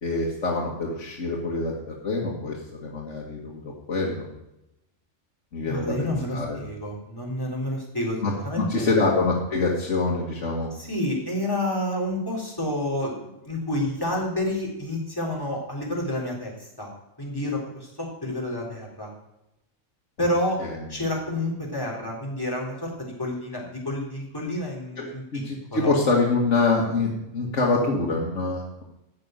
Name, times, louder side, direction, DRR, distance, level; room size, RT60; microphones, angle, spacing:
voice 1, 0.0-3.6 3.9-4.3 5.5-6.6 8.2-10.7 20.6-21.0 25.0-28.8, left 3 dB, 70° left, -2 dB, 2.0 m, -25 dB
voice 2, 5.7-8.2 8.4-9.1 10.7-16.9 17.2-19.1 20.2-20.6 20.9-25.4 25.7-25.9, left 1 dB, 15° left, -2 dB, 3.6 m, -29 dB
14.5 x 5.4 x 9.1 m, 0.90 s
omnidirectional pair, 1.3 m